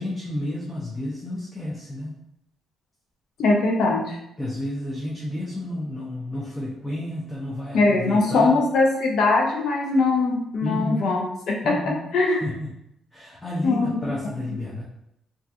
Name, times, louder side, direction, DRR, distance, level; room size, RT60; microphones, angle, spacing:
voice 1, 0.0-2.2 4.4-8.6 10.6-11.2 11.6-12.8 13.1-14.8, left 1 dB, 20° left, -5 dB, 0.6 m, -31 dB
voice 2, 3.4-4.2 7.7-11.2 11.7-11.8 12.1-12.4 13.6-14.0, left 3 dB, 70° left, 0 dB, 0.6 m, -21 dB
2.6 x 2.4 x 2.4 m, 0.80 s
cardioid pair, 90°, 0 cm